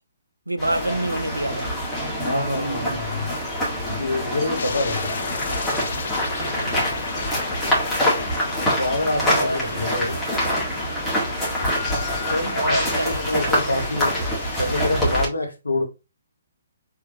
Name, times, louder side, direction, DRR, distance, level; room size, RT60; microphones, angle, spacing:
voice 1, 0.5-1.8 6.6-6.9 9.3-9.6 12.5-13.4, right 1 dB, 80° right, 0.5 m, -27 dB
sound 1, 0.6-15.2, equal, 5° left, 1.9 m, -25 dB
voice 2, 2.2-3.3 3.8-5.1 8.7-10.2 12.3-14.2 14.6-15.8, left 2 dB, 75° left, 1.3 m, -26 dB
sound 2, 4.6-14.8, left 6 dB, 50° left, 0.5 m, -36 dB
4.7 x 3.5 x 2.9 m
figure-of-eight pair, 130°, 0 cm